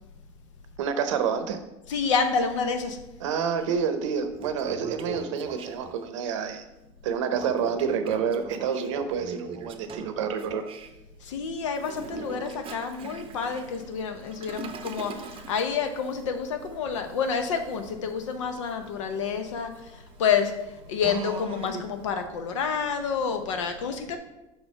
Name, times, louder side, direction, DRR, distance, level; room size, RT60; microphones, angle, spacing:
voice 1, 0.8-1.6 3.2-6.6 7.0-10.6, right 7 dB, 80° right, 9 dB, 0.7 m, -28 dB
voice 2, 1.9-3.0 11.2-19.7 20.2-20.5 20.9-24.2, left 6 dB, 85° left, 7 dB, 0.7 m, -28 dB
Toilet flush, 3.6-3.7 4.2-6.1 7.3-10.9 11.8-22.1, right 6 dB, 35° right, 0.6 m, -41 dB
5.3 x 4.4 x 4.4 m, 0.97 s
hypercardioid pair, 85°, 15 cm